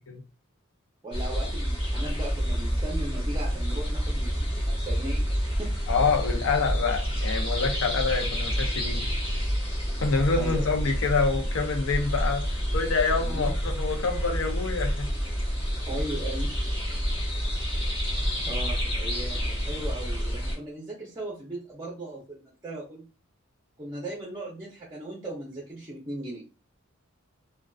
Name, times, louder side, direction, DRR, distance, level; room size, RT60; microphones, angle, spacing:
voice 1, 1.0-5.3 5.6-5.7 10.4-10.6 13.2-13.6 15.9-16.5 17.9-23.1 23.8-26.4, right 1 dB, 20° right, 0.5 m, -38 dB
sound 1, 1.1-20.6, equal, 25° left, 0.8 m, -28 dB
voice 2, 5.9-9.0 10.0-12.5 12.7-15.1, left 4 dB, 85° left, 0.5 m, -26 dB
2.4 x 2.2 x 2.3 m
head